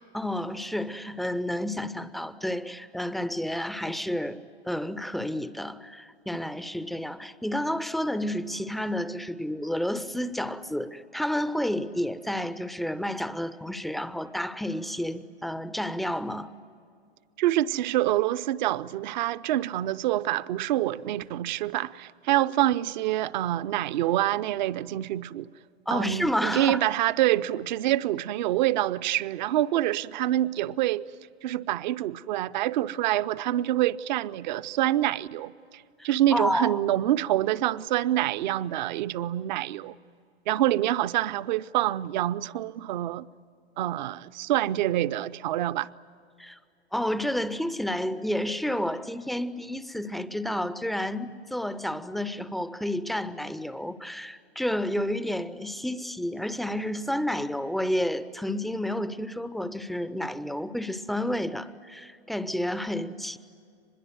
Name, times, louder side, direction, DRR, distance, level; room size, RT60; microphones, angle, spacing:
voice 1, 0.1-4.4 4.7-16.5 25.9-26.8 36.0-36.8 46.4-46.6 46.9-63.4, left 1 dB, ahead, 0.5 m, -30 dB
voice 2, 17.4-25.5 25.9-31.1 31.4-35.5 36.0-39.9 40.5-43.3 43.8-45.9, right 14 dB, 45° right, 0.7 m, -26 dB
24.5 x 21.5 x 9.4 m
figure-of-eight pair, 105°, 32 cm